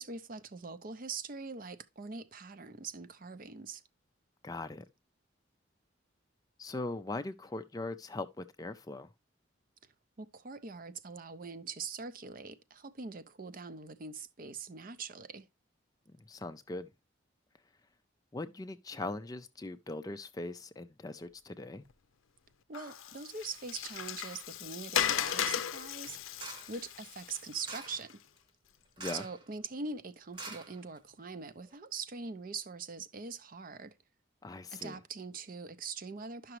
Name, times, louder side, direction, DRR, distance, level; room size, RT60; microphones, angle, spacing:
voice 1, 0.0-3.8 10.2-15.5 22.7-26.2 26.7-28.2 29.1-33.9 34.7-36.6, right 4 dB, 45° right, 0.5 m, -43 dB
voice 2, 4.4-4.9 6.6-9.1 16.3-16.9 18.3-21.8 29.0-29.2 34.4-35.0, left 2 dB, 20° left, 0.3 m, -40 dB
Water, 22.7-28.1, left 9 dB, 85° left, 0.5 m, -36 dB
sound 1, 25.2-25.6 26.4-26.8 27.6-28.1 29.0-29.5 29.7-29.8 30.3-31.2 31.7-31.8, right 3 dB, 25° right, 0.9 m, -46 dB
11.0 x 5.9 x 3.0 m
head